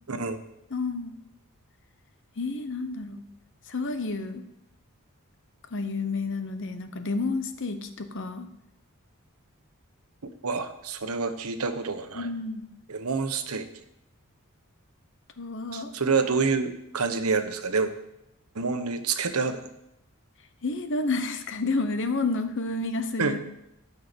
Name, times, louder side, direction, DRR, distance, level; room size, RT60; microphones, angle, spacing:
voice 1, 0.1-0.4 10.4-12.3 12.9-13.7 15.7-17.9 18.5-19.6 23.2-23.4, right 4 dB, 85° right, 9 dB, 1.0 m, -27 dB
voice 2, 0.7-1.1 2.4-3.2 3.7-4.4 5.7-8.5 12.1-12.7 15.4-15.9 20.6-23.4, left 3 dB, 60° left, 9 dB, 1.0 m, -30 dB
13.0 x 5.7 x 6.8 m, 0.85 s
head